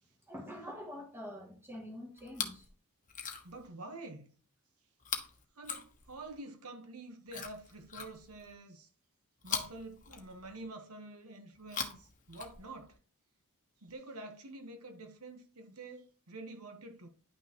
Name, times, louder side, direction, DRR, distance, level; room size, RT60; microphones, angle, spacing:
voice 1, 0.3-2.7, equal, 10° right, 2.4 m, -45 dB
Chewing mastication, 2.2-2.7 3.0-3.7 5.0-6.4 7.3-8.5 9.4-10.7 11.6-13.0 13.9-14.0, left 7 dB, 35° left, 1.1 m, -42 dB
voice 2, 3.4-4.3 5.6-8.9 9.4-13.0 13.8-17.1, right 2 dB, 75° right, 1.2 m, -48 dB
10.5 x 6.0 x 3.0 m
head